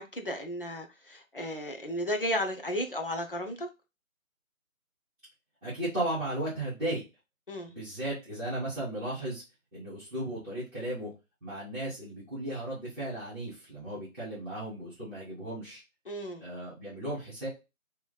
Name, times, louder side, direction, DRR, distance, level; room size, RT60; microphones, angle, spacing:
voice 1, 0.0-3.7 7.5-7.7 16.1-16.4, equal, 40° left, 0.7 m, -34 dB
voice 2, 5.6-7.0 7.7-9.4 9.7-11.1 11.4-15.8 16.4-17.5, right 1 dB, 10° right, 2.3 m, -35 dB
4.8 x 3.0 x 2.3 m
figure-of-eight pair, 165°, 43 cm